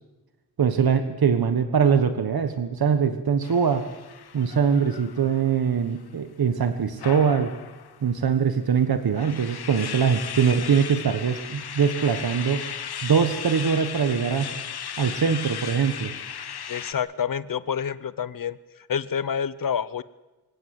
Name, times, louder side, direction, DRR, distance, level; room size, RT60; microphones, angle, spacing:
voice 1, 0.6-3.8 4.3-7.5 8.0-12.6 13.0-14.5 15.0-16.1, right 6 dB, 70° right, 9 dB, 1.5 m, -22 dB
sound 1, 3.4-6.1 7.0-8.1 8.8-8.9 9.1-16.9, left 8 dB, 85° left, 1.2 m, -36 dB
voice 2, 16.7-18.6 18.9-20.0, left 7 dB, 60° left, 16 dB, 0.8 m, -28 dB
25.5 x 17.0 x 7.8 m, 1.1 s
wide cardioid pair, 160°, 38 cm